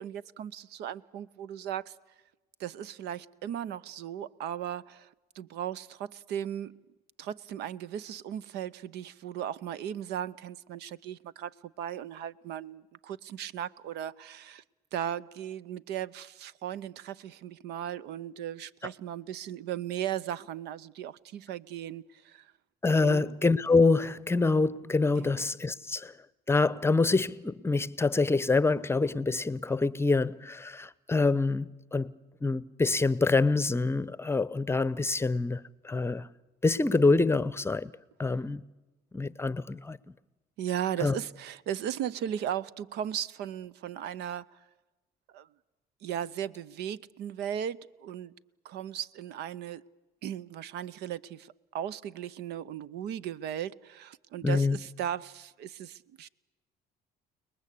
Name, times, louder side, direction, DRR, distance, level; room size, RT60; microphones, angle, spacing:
voice 1, 0.0-1.9 2.6-5.1 5.3-6.8 7.2-14.6 14.9-22.5 23.0-23.3 25.1-25.4 40.6-44.6 45.3-45.5 46.0-48.3 48.6-49.8 50.2-56.3, right 10 dB, 80° right, 0.8 m, -37 dB
voice 2, 22.8-26.1 26.5-32.1 32.4-35.6 35.8-36.3 36.6-37.9 38.2-38.6 39.1-40.0 41.0-41.2 54.4-54.8, left 3 dB, 15° left, 0.8 m, -26 dB
30.0 x 20.0 x 8.4 m
cardioid pair, 110°, 17 cm